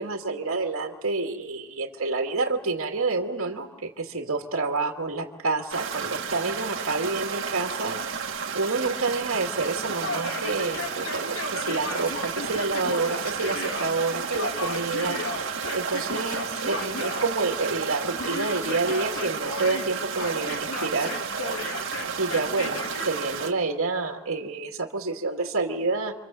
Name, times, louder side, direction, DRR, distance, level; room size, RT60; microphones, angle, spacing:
voice 1, 0.0-8.2 8.5-21.2 22.2-26.1, right 3 dB, 75° right, 3 dB, 2.3 m, -28 dB
sound 1, 5.7-23.5, right 6 dB, 60° right, 2.3 m, -32 dB
Yell, 10.0-13.9 14.3-17.3 18.2-19.9 20.2-23.1, left 2 dB, 70° left, 3.6 m, -35 dB
27.5 x 26.0 x 7.7 m, 1.2 s
head